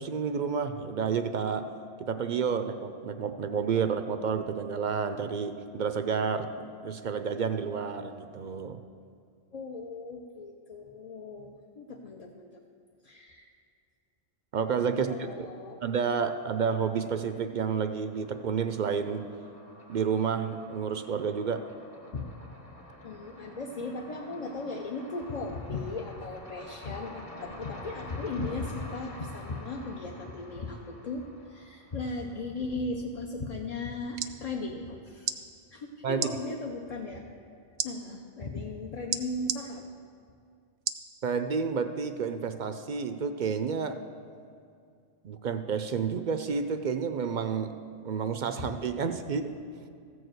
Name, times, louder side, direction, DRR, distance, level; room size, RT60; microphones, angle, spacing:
voice 1, 0.0-1.7 2.0-6.5 6.8-8.8 14.5-15.5 15.8-19.2 19.9-21.6 36.0-36.3 41.2-44.0 45.2-47.7 48.0-49.5, right 6 dB, 55° right, 9 dB, 0.5 m, -30 dB
voice 2, 9.5-12.6 13.0-13.5 14.9-15.8 22.1-22.3 23.0-35.3 35.7-37.2 37.8-39.9 48.6-48.7, left 3 dB, 45° left, 1 dB, 0.7 m, -37 dB
sound 1, 16.6-17.1 17.4-32.6, equal, 60° left, 2.2 m, -48 dB
sound 2, 33.9-34.4 35.2-35.4 36.1-36.3 37.8-37.9 39.1-39.6 40.9-41.1 41.7-41.8, right 8 dB, 80° right, 0.8 m, -31 dB
14.0 x 4.7 x 7.8 m, 2.3 s
omnidirectional pair, 1.1 m